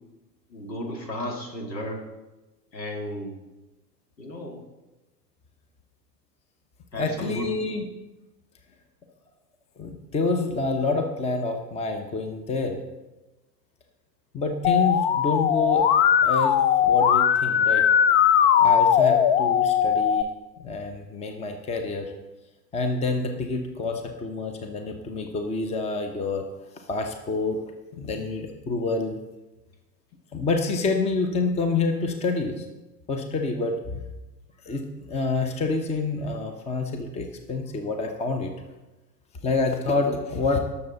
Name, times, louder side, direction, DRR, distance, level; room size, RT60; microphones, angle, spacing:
voice 1, 0.5-2.1 2.7-3.4 4.2-4.6 6.9-7.5, left 1 dB, 80° left, 1 dB, 2.6 m, -34 dB
voice 2, 7.0-7.8 9.8-12.8 14.3-15.8 16.2-17.8 18.6-20.3 20.6-22.1 22.7-26.4 26.9-27.6 27.9-29.2 30.3-32.7 33.1-34.0 34.6-38.5 39.4-40.6, left 3 dB, 15° left, 5 dB, 1.0 m, -27 dB
Musical instrument, 14.6-20.2, left 8 dB, 40° left, 0.7 m, -19 dB
18.5 x 7.0 x 4.0 m, 1.1 s
figure-of-eight pair, 95°, 50 cm